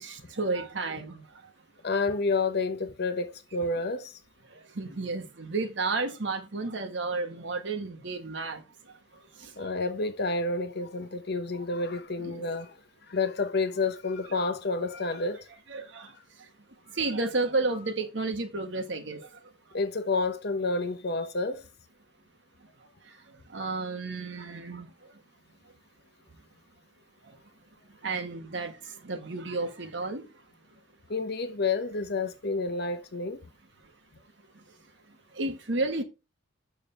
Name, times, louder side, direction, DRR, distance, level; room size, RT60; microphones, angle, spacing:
voice 1, 0.0-1.5 4.5-9.7 12.2-12.4 15.7-16.5 16.9-19.5 23.0-25.2 27.2-27.4 27.9-30.4 34.5-34.8 35.3-36.0, right 3 dB, 60° right, 1.4 m, -33 dB
voice 2, 1.8-4.1 9.6-12.8 13.1-15.5 19.7-21.6 31.1-33.4, left 3 dB, 55° left, 0.8 m, -29 dB
6.9 x 6.4 x 3.3 m
head